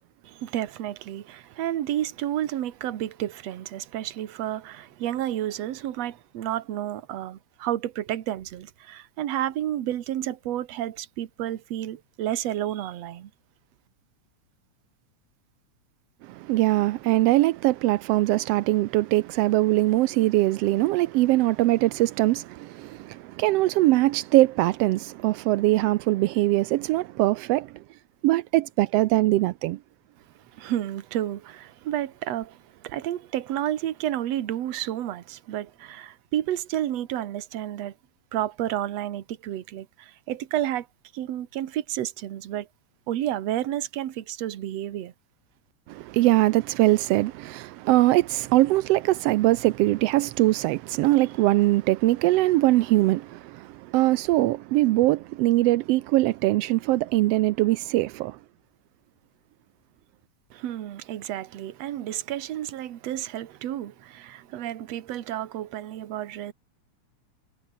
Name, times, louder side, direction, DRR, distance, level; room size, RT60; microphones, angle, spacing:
voice 1, 0.2-13.3 30.5-37.9 38.3-40.9 41.1-42.7 43.1-45.1 60.5-66.5, right 12 dB, 60° right, 2.4 m, -31 dB
voice 2, 16.2-27.7 28.2-29.8 45.9-58.4, right 17 dB, 90° right, 1.4 m, -22 dB
omnidirectional pair, 3.5 m